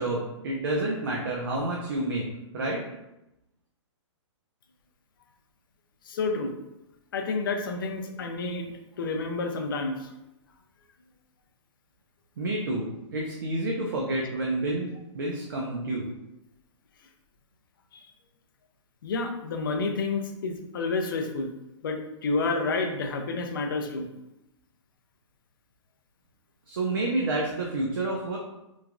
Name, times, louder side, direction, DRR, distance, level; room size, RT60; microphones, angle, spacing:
voice 1, 0.0-2.3 2.5-2.8 12.4-16.1 26.7-28.4, right 2 dB, 45° right, -2 dB, 0.4 m, -29 dB
voice 2, 6.1-6.5 7.1-10.1 17.9-18.1 19.0-21.5 21.8-24.1, left 3 dB, 45° left, 5 dB, 0.4 m, -30 dB
3.0 x 2.2 x 2.4 m, 0.91 s
hypercardioid pair, 175°, 16 cm